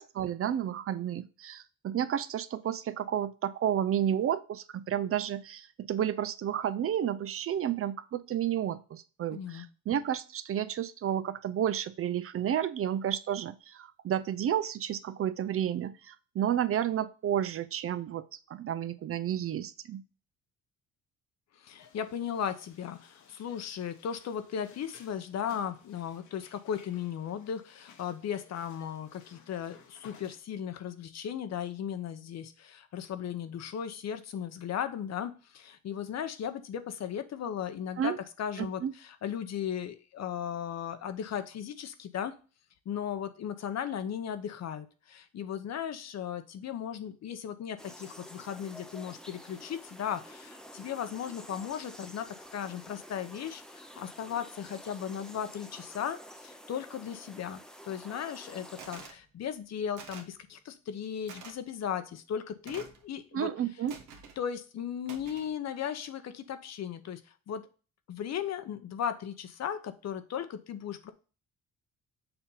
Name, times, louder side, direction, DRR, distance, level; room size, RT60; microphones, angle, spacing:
voice 1, 0.0-18.2 18.5-20.0 38.0-38.2 38.6-38.9 63.3-63.9, right 10 dB, 50° right, 13 dB, 0.5 m, -31 dB
voice 2, 9.3-9.7 21.6-42.3 42.9-52.3 52.5-63.5 64.4-67.2 67.5-67.6 68.1-71.1, left 8 dB, 60° left, 10 dB, 0.8 m, -36 dB
sound 1, 21.8-30.4, left 7 dB, 75° left, 1.2 m, -58 dB
sound 2, 47.8-59.1, equal, ahead, 0.7 m, -49 dB
sound 3, 58.8-59.2 60.0-60.4 61.3-61.5 62.7-63.0 63.9-64.4 65.1-65.5, right 6 dB, 80° right, 1.3 m, -47 dB
6.9 x 2.8 x 5.5 m, 0.35 s
cardioid pair, 90°, 30 cm